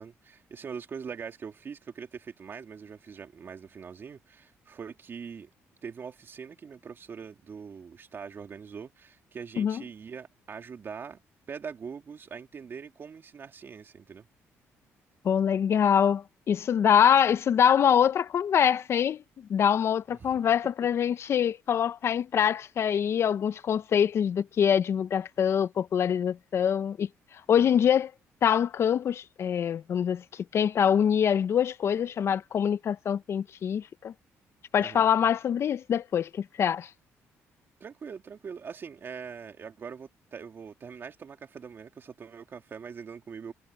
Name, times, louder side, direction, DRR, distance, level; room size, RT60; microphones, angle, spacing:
voice 1, 0.0-5.5 5.8-11.2 11.5-14.3 20.1-20.4 34.8-35.1 37.8-43.5, right 6 dB, 45° right, 2.8 m, -42 dB
voice 2, 15.2-19.2 19.5-27.1 27.5-28.1 28.4-34.1 34.7-36.9, left 8 dB, 55° left, 0.7 m, -24 dB
cardioid pair, 100°, 5 cm